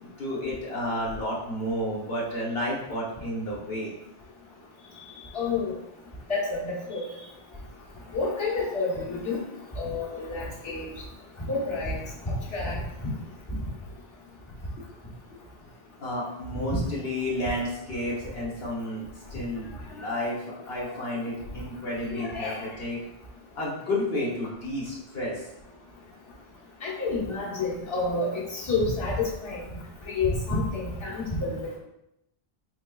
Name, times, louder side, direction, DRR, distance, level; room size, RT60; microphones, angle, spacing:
voice 1, 0.0-3.9 16.0-19.0 19.3-23.0 23.6-25.4, left 1 dB, 70° left, -5 dB, 1.2 m, -31 dB
voice 2, 5.3-5.7 6.3-7.0 8.1-9.4 9.8-10.9 11.5-12.0 12.2-12.8 16.7-16.8 22.2-22.6 26.8-29.2 29.4-29.6 30.1-31.6, left 3 dB, 30° left, -7 dB, 1.1 m, -29 dB
4.2 x 3.2 x 2.3 m, 0.82 s
omnidirectional pair, 1.1 m